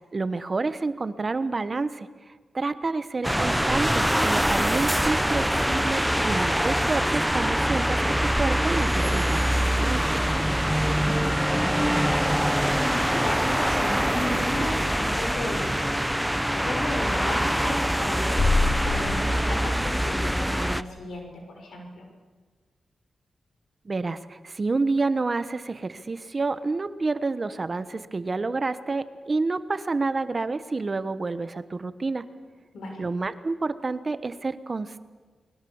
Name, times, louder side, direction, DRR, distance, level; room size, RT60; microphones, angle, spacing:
voice 1, 0.1-2.1 2.5-10.0 23.8-32.2 33.0-35.0, right 3 dB, 35° right, 12 dB, 1.2 m, -29 dB
sound 1, 3.2-20.8, equal, 5° right, 0.7 m, -24 dB
voice 2, 11.0-16.2 16.5-18.4 18.9-22.1 32.7-33.0, left 1 dB, 90° left, 2 dB, 6.1 m, -35 dB
sound 2, 18.4-20.8, left 3 dB, 45° left, 3.1 m, -28 dB
30.0 x 21.5 x 7.2 m, 1.4 s
wide cardioid pair, 100°, 0 cm